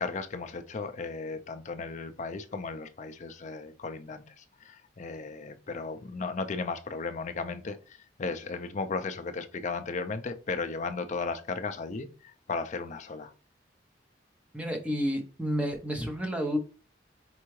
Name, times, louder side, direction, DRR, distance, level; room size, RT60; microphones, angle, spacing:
voice 1, 0.0-13.3, left 4 dB, 40° left, 9 dB, 0.4 m, -35 dB
voice 2, 14.5-16.6, equal, 5° right, 4 dB, 0.8 m, -30 dB
4.6 x 3.3 x 3.1 m, 0.36 s
head